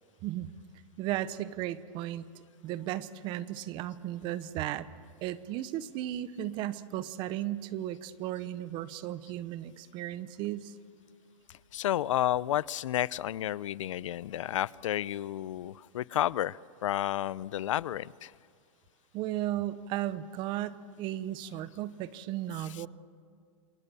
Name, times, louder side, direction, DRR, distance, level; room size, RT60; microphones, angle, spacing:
voice 1, 1.0-2.3 2.6-4.9 5.2-10.7 19.1-22.9, right 13 dB, 30° right, 16 dB, 0.9 m, -35 dB
voice 2, 11.7-18.3 22.7-22.8, left 12 dB, 80° left, 22 dB, 0.6 m, -31 dB
28.5 x 27.5 x 6.9 m, 2.1 s
supercardioid pair, 160°, 16 cm